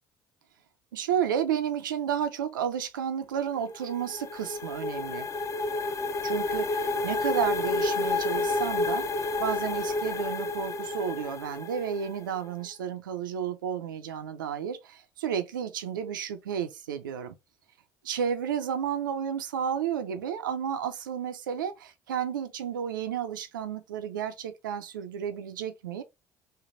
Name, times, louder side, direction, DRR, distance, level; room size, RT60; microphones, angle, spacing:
voice 1, 0.9-5.3 6.2-17.4 18.0-26.0, right 8 dB, 90° right, 0.4 m, -32 dB
sound 1, 3.6-12.2, left 3 dB, 30° left, 0.6 m, -30 dB
3.2 x 2.1 x 3.7 m
hypercardioid pair, 55°, 10 cm